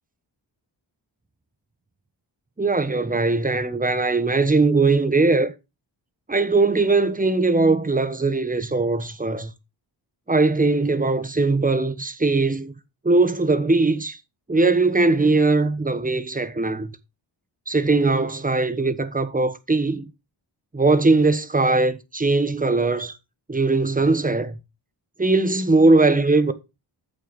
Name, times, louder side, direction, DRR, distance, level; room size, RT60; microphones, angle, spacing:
voice 1, 2.6-5.5 6.3-9.5 10.3-12.7 13.0-14.2 14.5-16.9 17.7-20.1 20.7-23.1 23.5-24.5 25.2-26.5, right 3 dB, 20° right, 1.2 m, -20 dB
9.1 x 6.7 x 5.2 m
cardioid pair, 75°, 45 cm